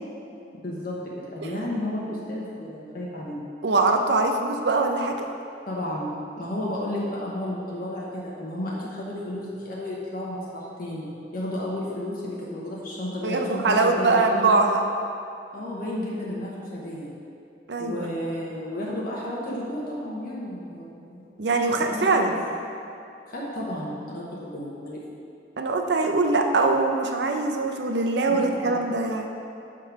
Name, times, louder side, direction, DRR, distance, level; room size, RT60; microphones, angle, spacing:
voice 1, 0.6-3.5 5.7-14.5 15.5-17.1 17.8-21.3 21.8-22.4 23.3-25.1 28.3-28.9, left 1 dB, 55° left, -5 dB, 0.9 m, -32 dB
voice 2, 3.6-5.3 13.2-14.8 17.7-18.1 21.4-22.4 25.6-29.3, right 3 dB, 70° right, 4 dB, 0.6 m, -22 dB
6.3 x 3.8 x 5.7 m, 2.6 s
head